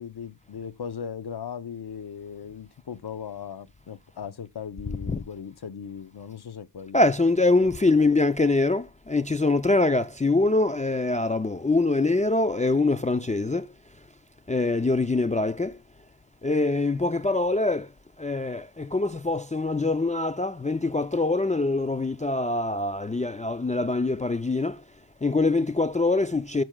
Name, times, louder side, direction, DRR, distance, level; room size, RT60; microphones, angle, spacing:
voice 1, 0.0-7.0, left 7 dB, 60° left, 0.7 m, -38 dB
voice 2, 6.9-13.7 14.5-15.8 16.4-17.9 18.2-24.8 25.2-26.6, left 2 dB, 20° left, 0.4 m, -24 dB
13.5 x 6.1 x 2.2 m
wide cardioid pair, 80°, 44 cm